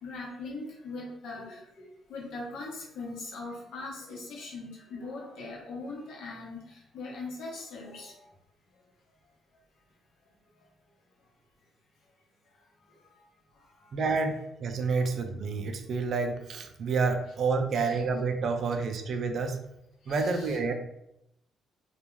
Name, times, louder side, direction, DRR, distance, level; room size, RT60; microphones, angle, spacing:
voice 1, 0.0-1.8 2.1-8.1 15.0-15.1 17.7-18.0 20.1-20.6, left 3 dB, 80° left, -3 dB, 0.9 m, -40 dB
voice 2, 13.9-19.6 20.1-20.7, right 4 dB, 60° right, 6 dB, 0.4 m, -29 dB
2.3 x 2.2 x 3.0 m, 0.81 s
cardioid pair, 90°, 0 cm